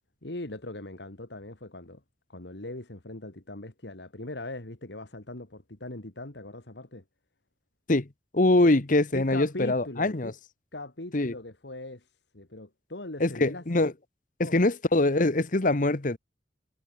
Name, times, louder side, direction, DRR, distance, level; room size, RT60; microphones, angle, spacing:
voice 1, 0.2-2.0 2.3-7.0 8.6-8.7 9.1-10.3 10.7-13.9 14.4-14.6, left 2 dB, 70° left, 2.3 m, -40 dB
voice 2, 8.3-10.3 11.1-11.3 13.2-13.9 14.4-16.2, left 2 dB, 45° left, 1.1 m, -23 dB
head